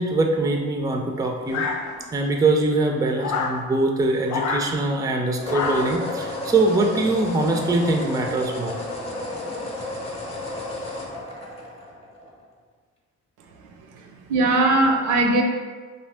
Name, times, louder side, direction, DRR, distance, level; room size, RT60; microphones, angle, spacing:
voice 1, 0.0-1.7 2.1-8.8, right 2 dB, 10° right, 2 dB, 0.3 m, -22 dB
sound 1, 1.2-1.4 5.3-12.4, left 2 dB, 20° left, 0.7 m, -32 dB
sound 2, 1.5-2.3 3.2-3.6 4.3-4.7 5.5-6.0, left 4 dB, 70° left, 0.5 m, -27 dB
voice 2, 13.5-15.4, right 2 dB, 80° right, 3 dB, 0.5 m, -21 dB
2.7 x 2.7 x 3.3 m, 1.4 s
cardioid pair, 90°, 30 cm